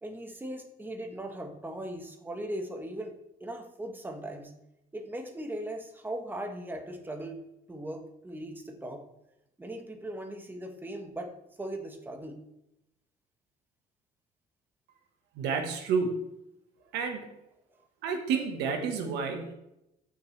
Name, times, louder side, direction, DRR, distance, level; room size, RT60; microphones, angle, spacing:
voice 1, 0.0-4.5 4.9-7.4 7.7-9.0 9.6-12.4, right 1 dB, 10° right, 4 dB, 1.3 m, -39 dB
voice 2, 15.3-16.2 16.9-17.3 18.0-19.5, right 5 dB, 90° right, 5 dB, 1.4 m, -30 dB
14.5 x 6.5 x 3.3 m, 0.86 s
cardioid pair, 110°, 17 cm